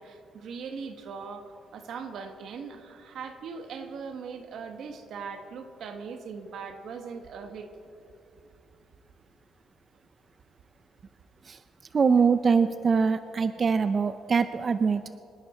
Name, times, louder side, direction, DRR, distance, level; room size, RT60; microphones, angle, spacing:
voice 1, 0.0-7.7, right 5 dB, 70° right, 6 dB, 1.6 m, -40 dB
voice 2, 11.9-15.0, right 5 dB, 40° right, 11 dB, 0.5 m, -23 dB
26.5 x 11.0 x 4.4 m, 2.5 s
cardioid pair, 90°, 0 cm